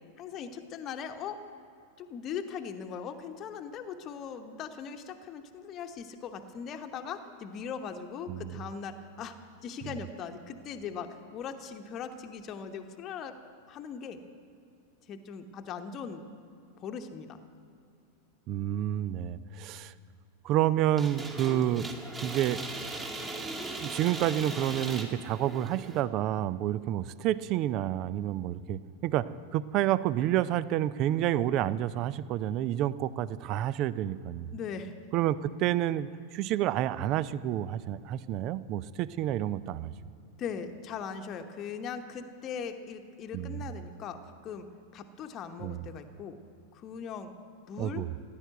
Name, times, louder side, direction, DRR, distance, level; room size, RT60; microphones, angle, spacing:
voice 1, 0.2-1.5 2.0-9.3 9.6-13.4 13.7-14.2 15.1-16.2 16.8-17.4 34.5-34.9 40.4-44.7 44.9-46.4 46.7-47.3 47.7-48.1, left 6 dB, 30° left, 6 dB, 1.0 m, -39 dB
voice 2, 8.3-8.6 18.5-19.9 20.4-21.9 22.2-22.6 23.8-34.5 35.1-39.9 43.3-43.6 45.6-45.8 47.8-48.1, right 12 dB, 40° right, 18 dB, 0.5 m, -29 dB
sound 1, 21.0-26.0, right 2 dB, 15° right, 2.0 m, -39 dB
16.0 x 10.5 x 7.9 m, 2.5 s
figure-of-eight pair, 90°, 0 cm